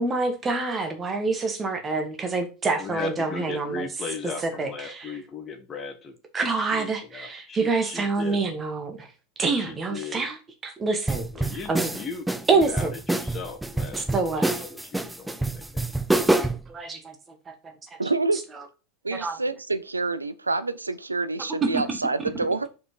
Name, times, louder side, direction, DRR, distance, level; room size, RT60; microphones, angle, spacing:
voice 1, 0.0-3.8 4.4-5.1 6.3-9.1 9.4-10.4 10.6-11.9 12.5-12.9 14.0-14.5 16.7-17.1 17.5-17.6 19.1-19.4 21.6-21.8, right 3 dB, 25° right, 1.6 m, -26 dB
voice 2, 2.8-8.4 9.6-10.2 11.3-12.2 12.5-14.2 14.6-15.9, left 4 dB, 30° left, 1.5 m, -37 dB
sound 1, 11.1-16.7, right 2 dB, 5° right, 0.6 m, -26 dB
voice 3, 18.0-18.4 19.0-22.7, right 3 dB, 90° right, 0.5 m, -27 dB
5.5 x 4.7 x 4.6 m
figure-of-eight pair, 85°, 0 cm